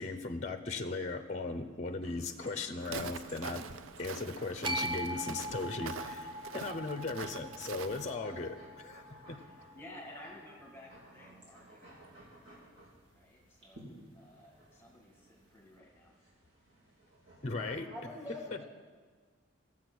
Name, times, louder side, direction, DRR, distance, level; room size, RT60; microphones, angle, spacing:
voice 1, 0.0-3.6 4.0-9.4 17.4-17.9, left 3 dB, 35° left, 7 dB, 0.6 m, -38 dB
sound 1, 2.0-17.8, right 1 dB, 60° right, 3.3 m, -57 dB
Walk footsteps, 2.8-8.2, right 6 dB, 80° right, 0.5 m, -44 dB
sound 2, 4.6-10.9, right 1 dB, 25° right, 0.5 m, -42 dB
voice 2, 9.4-12.8 13.1-16.1, left 1 dB, 10° left, -1 dB, 1.6 m, -54 dB
voice 3, 17.6-18.7, left 1 dB, 10° right, -4 dB, 2.7 m, -45 dB
15.5 x 7.5 x 6.1 m, 1.5 s
head